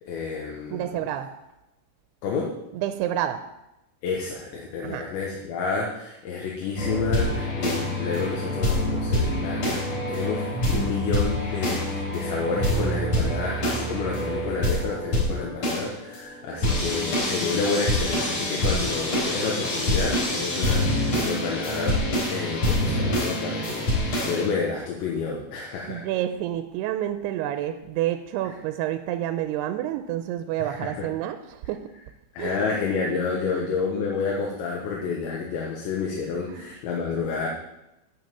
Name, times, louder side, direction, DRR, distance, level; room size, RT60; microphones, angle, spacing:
voice 1, 0.0-1.1 2.2-2.5 4.0-10.5 10.7-26.1 28.4-28.6 30.6-31.1 32.3-37.5, left 5 dB, 85° left, -2 dB, 3.6 m, -30 dB
voice 2, 0.7-1.3 2.7-3.4 4.8-5.1 16.5-16.7 25.9-31.4 31.7-31.8 32.4-32.7 33.5-33.6 36.5-36.7, right 12 dB, 80° right, 8 dB, 2.5 m, -29 dB
sound 1, 6.8-24.5, left 1 dB, 45° left, 5.1 m, -26 dB
11.5 x 5.5 x 7.7 m, 0.89 s
omnidirectional pair, 5.0 m